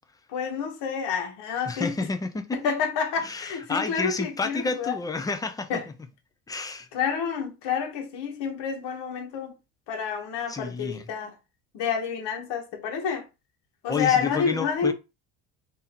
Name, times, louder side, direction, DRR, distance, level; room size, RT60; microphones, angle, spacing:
voice 1, 0.3-2.1 2.5-5.0 5.7-5.9 6.9-9.5 9.9-11.3 11.7-13.3 13.8-14.9, left 6 dB, 65° left, 1.1 m, -29 dB
voice 2, 1.7-2.6 3.2-5.8 6.5-6.9 10.5-11.0 13.9-14.9, left 4 dB, 10° left, 0.3 m, -30 dB
2.7 x 2.6 x 4.1 m
cardioid pair, 110°, 45 cm